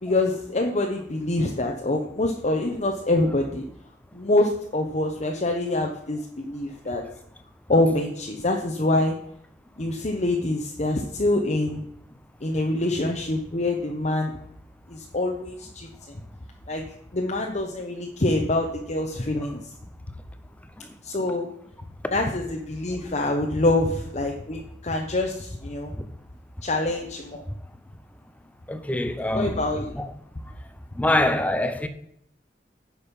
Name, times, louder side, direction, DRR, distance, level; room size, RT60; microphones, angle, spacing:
voice 1, 0.0-3.6 4.1-7.0 7.7-9.1 9.8-11.8 12.4-14.3 14.9-15.9 16.7-16.8 17.1-19.6 21.0-21.5 22.1-25.9 26.6-27.4 29.3-29.9, left 2 dB, 40° left, 1.0 m, -25 dB
voice 2, 28.7-29.6 29.9-30.1 31.0-31.9, left 1 dB, 10° left, 0.8 m, -24 dB
10.0 x 6.5 x 5.4 m
head